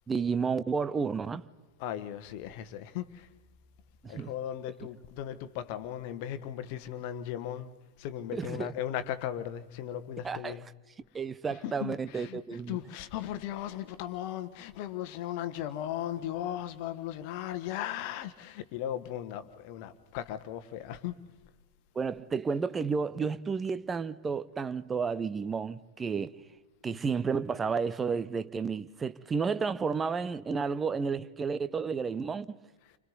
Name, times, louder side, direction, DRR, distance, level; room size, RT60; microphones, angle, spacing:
voice 1, 0.1-1.4 4.0-4.3 8.3-8.7 10.2-10.6 11.1-12.8 21.9-26.4 26.8-32.6, right 5 dB, 15° right, 0.8 m, -31 dB
voice 2, 1.8-3.3 4.1-7.7 8.0-10.6 11.6-21.1 26.9-27.0, left 11 dB, 45° left, 1.3 m, -37 dB
30.0 x 25.5 x 4.0 m
figure-of-eight pair, 90°, 0 cm